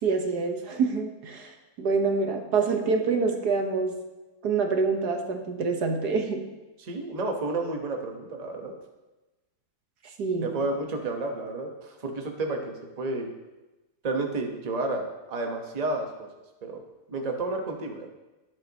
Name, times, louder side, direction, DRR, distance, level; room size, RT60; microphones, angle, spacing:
voice 1, 0.0-1.5 1.8-3.9 4.4-6.4 10.2-10.5, right 4 dB, 80° right, 4 dB, 1.7 m, -26 dB
voice 2, 6.8-8.7 10.4-13.3 14.0-16.3 16.6-16.8 17.1-18.1, right 2 dB, 30° right, 3 dB, 1.1 m, -31 dB
19.0 x 7.7 x 2.9 m, 1.1 s
omnidirectional pair, 1.7 m